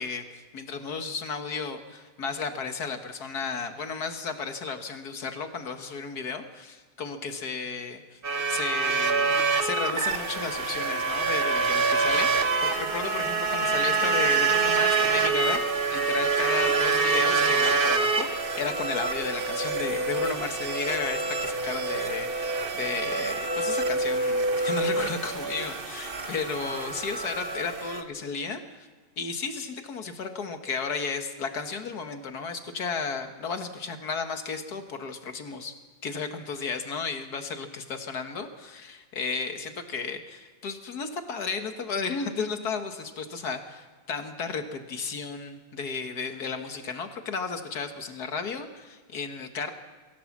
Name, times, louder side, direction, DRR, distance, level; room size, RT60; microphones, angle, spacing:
voice 1, 0.0-8.2 8.5-28.9 29.2-49.7, left 5 dB, 80° left, 6 dB, 2.1 m, -33 dB
sound 1, 8.2-28.0, right 4 dB, 40° right, 1.3 m, -26 dB
23.5 x 16.0 x 7.4 m, 1.3 s
omnidirectional pair, 1.6 m